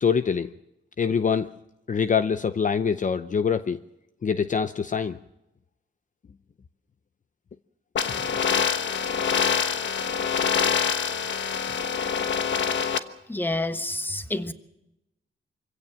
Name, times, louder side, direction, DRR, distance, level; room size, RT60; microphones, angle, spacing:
voice 1, 0.0-0.5 1.0-1.5 1.9-3.8 4.2-5.2, left 6 dB, 40° left, 0.7 m, -24 dB
sound 1, 8.0-13.0, left 7 dB, 70° left, 1.3 m, -25 dB
voice 2, 13.3-14.5, left 2 dB, 10° left, 1.3 m, -28 dB
25.0 x 16.5 x 7.6 m
cardioid pair, 100°, 20 cm